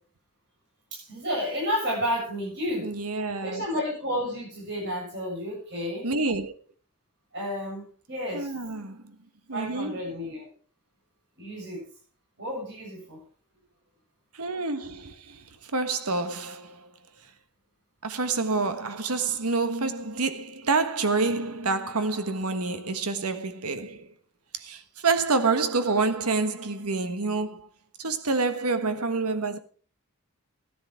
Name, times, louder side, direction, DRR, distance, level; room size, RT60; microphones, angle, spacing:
voice 1, 0.9-2.9 3.4-6.1 7.3-8.5 9.5-10.5 11.4-11.8 12.4-13.2, equal, 55° right, 7.3 m, -31 dB
voice 2, 2.8-3.7 6.0-6.5 8.3-9.1 9.5-10.0 14.3-16.9 18.0-24.1 24.5-27.7 28.0-29.6, right 3 dB, 90° right, 1.4 m, -28 dB
13.5 x 10.0 x 4.6 m
head